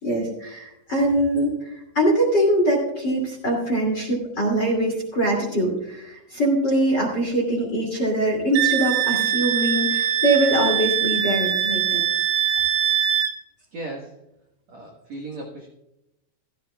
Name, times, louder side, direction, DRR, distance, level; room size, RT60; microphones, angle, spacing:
voice 1, 0.0-12.0, right 1 dB, 30° left, 0 dB, 2.1 m, -23 dB
Wind instrument woodwind instrument, 8.5-13.3, right 10 dB, 80° right, 3.1 m, -22 dB
voice 2, 13.7-14.2 14.7-15.7, right 2 dB, 65° right, -1 dB, 1.8 m, -36 dB
16.0 x 13.5 x 2.3 m, 0.83 s
omnidirectional pair, 5.2 m